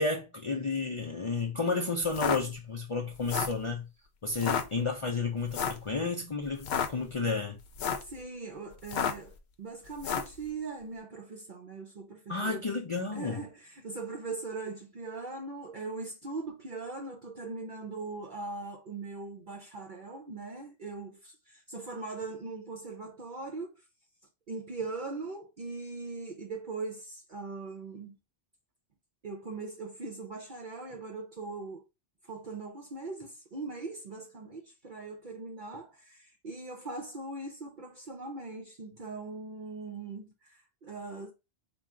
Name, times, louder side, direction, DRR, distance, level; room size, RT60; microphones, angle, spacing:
voice 1, 0.0-3.9 4.2-7.6 12.3-13.4, left 3 dB, 40° left, 0.5 m, -31 dB
sound 1, 2.0-2.4 3.1-3.6 4.3-4.6 5.5-5.9 6.5-6.9 7.6-8.1 8.8-9.3 10.0-10.4, left 7 dB, 75° left, 0.8 m, -31 dB
voice 2, 8.0-12.6 13.1-23.7 24.5-28.2 29.2-31.8 32.2-41.3, right 3 dB, 55° right, 0.7 m, -40 dB
4.2 x 2.3 x 3.5 m
omnidirectional pair, 1.1 m